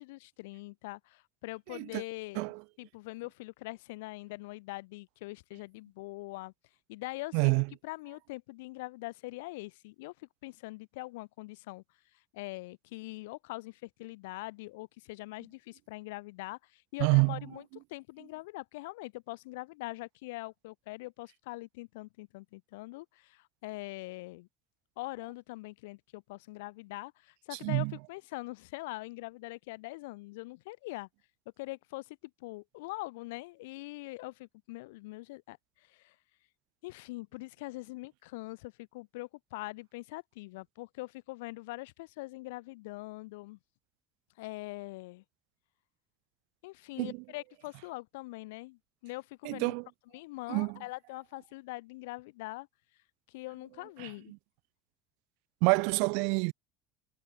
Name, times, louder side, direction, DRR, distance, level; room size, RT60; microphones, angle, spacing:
voice 1, 0.0-2.5 2.8-6.5 6.9-7.5 7.8-11.8 12.3-17.6 17.9-24.5 25.0-31.1 31.6-36.2 36.8-43.6 44.4-45.2 46.6-49.7 50.1-52.7 53.3-54.3, left 22 dB, 75° left, 5.8 m, -43 dB
voice 2, 1.7-2.0 2.3-2.6 7.3-7.7 17.0-17.4 27.6-27.9 47.0-47.2 49.4-49.8 50.5-50.8 54.0-54.1 55.6-56.5, right 38 dB, 70° right, 1.1 m, -27 dB
hypercardioid pair, 75°, 0 cm